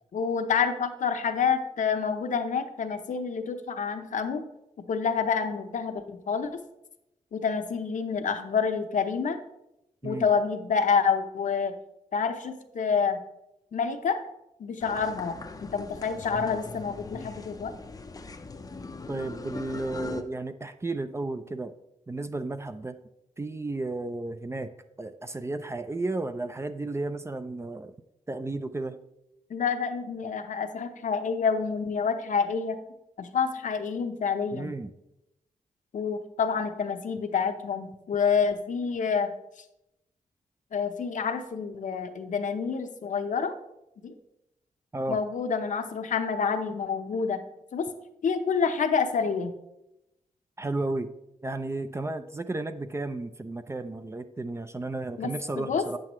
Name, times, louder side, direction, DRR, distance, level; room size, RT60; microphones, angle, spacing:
voice 1, 0.1-4.4 4.9-6.5 7.3-9.4 10.0-11.7 12.1-13.2 13.7-14.2 14.6-17.7 29.5-32.8 33.2-34.7 35.9-39.3 40.7-43.6 44.0-44.1 45.1-47.4 47.7-47.9 48.2-49.5 55.2-55.8, left 6 dB, 65° left, 7 dB, 0.8 m, -28 dB
sound 1, 14.8-20.2, left 3 dB, 25° left, 0.6 m, -40 dB
voice 2, 19.1-21.7 22.1-23.0 23.4-24.7 25.0-27.9 28.3-29.0 34.5-34.9 44.9-45.2 50.6-51.1 51.4-56.0, right 2 dB, 20° right, 10 dB, 0.4 m, -33 dB
8.5 x 7.6 x 3.1 m, 0.87 s
cardioid pair, 90°, 14 cm